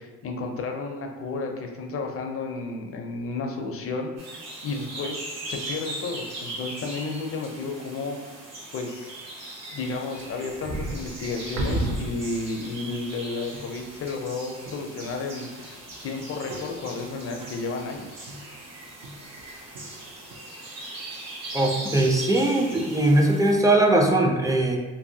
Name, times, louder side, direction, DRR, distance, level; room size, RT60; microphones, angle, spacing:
voice 1, 0.0-8.2 8.7-9.1 9.7-18.3, left 3 dB, 50° left, 3 dB, 0.5 m, -32 dB
sound 1, 4.2-23.5, right 2 dB, 60° right, 1.0 m, -40 dB
sound 2, 10.2-12.7 13.1-13.2 13.5-14.0 14.6-15.3 15.6-19.4 19.7-20.4, right 1 dB, 80° right, 0.5 m, -34 dB
voice 2, 21.5-24.8, right 1 dB, 10° right, 1 dB, 0.4 m, -20 dB
2.8 x 2.6 x 2.6 m, 1.2 s
cardioid pair, 90°, 30 cm